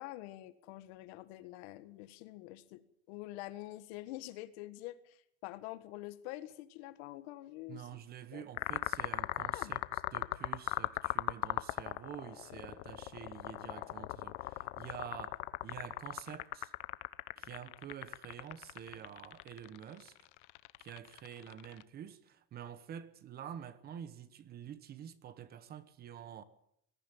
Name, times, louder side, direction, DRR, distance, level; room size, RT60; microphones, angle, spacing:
voice 1, 0.0-2.8 3.1-7.9 8.3-8.4 9.5-9.7, left 16 dB, 65° left, 1.7 m, -46 dB
voice 2, 7.7-9.8 10.1-16.7 17.4-20.2 20.8-26.4, right 9 dB, 25° right, 1.1 m, -48 dB
sound 1, 8.6-21.8, left 20 dB, 90° left, 1.1 m, -39 dB
21.5 x 14.5 x 9.0 m
cardioid pair, 170°, 34 cm